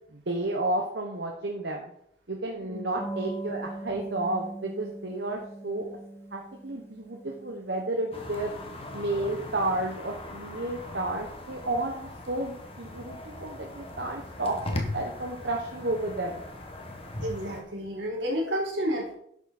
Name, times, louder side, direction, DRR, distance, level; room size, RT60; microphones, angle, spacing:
voice 1, 0.0-1.9 2.3-5.9 6.3-8.5 8.9-16.4, right 2 dB, 65° right, 0 dB, 1.3 m, -32 dB
voice 2, 2.6-3.0 17.2-19.2, equal, 80° right, -2 dB, 3.4 m, -31 dB
sound 1, 3.0-9.2, right 2 dB, 15° left, 1.1 m, -41 dB
sound 2, 8.1-17.6, left 1 dB, 30° left, 1.5 m, -39 dB
11.0 x 7.1 x 4.4 m, 0.70 s
head